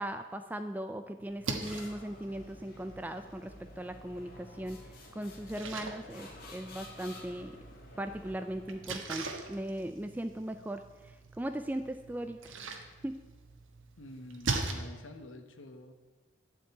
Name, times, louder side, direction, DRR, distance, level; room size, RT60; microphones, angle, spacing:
voice 1, 0.0-4.8 5.1-7.6 8.0-12.6 13.0-13.2, right 1 dB, 10° right, 8 dB, 0.4 m, -38 dB
Splash splatter, 1.2-14.7, right 3 dB, 90° right, 1.4 m, -42 dB
sound 1, 1.6-9.0, left 1 dB, 50° left, 2.1 m, -51 dB
voice 2, 14.0-15.9, left 1 dB, 85° left, 6 dB, 1.1 m, -48 dB
12.0 x 5.2 x 8.8 m, 1.3 s
head